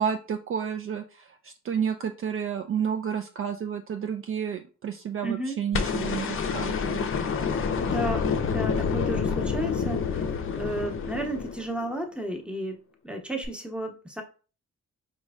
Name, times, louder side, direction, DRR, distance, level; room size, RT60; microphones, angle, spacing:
voice 1, 0.0-7.1, right 7 dB, 45° right, 5 dB, 0.4 m, -31 dB
voice 2, 5.2-5.6 7.8-10.3 10.5-14.2, right 1 dB, 5° right, 3 dB, 0.9 m, -33 dB
sound 1, 5.7-11.9 13.4-13.5, left 6 dB, 45° left, 0.5 m, -28 dB
5.1 x 3.1 x 2.3 m, 0.35 s
cardioid pair, 110°, 30 cm